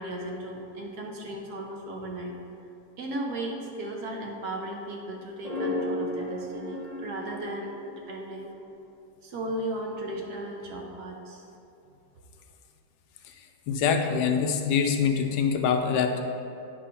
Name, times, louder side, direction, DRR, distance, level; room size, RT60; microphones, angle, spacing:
voice 1, 0.0-2.3 3.0-8.5 9.2-11.4, right 1 dB, 65° right, 0 dB, 1.2 m, -36 dB
sound 1, 5.4-8.7, left 1 dB, 80° right, 0.3 m, -34 dB
voice 2, 13.7-16.2, left 6 dB, 75° left, 5 dB, 1.1 m, -24 dB
9.3 x 3.2 x 5.5 m, 2.7 s
omnidirectional pair, 2.0 m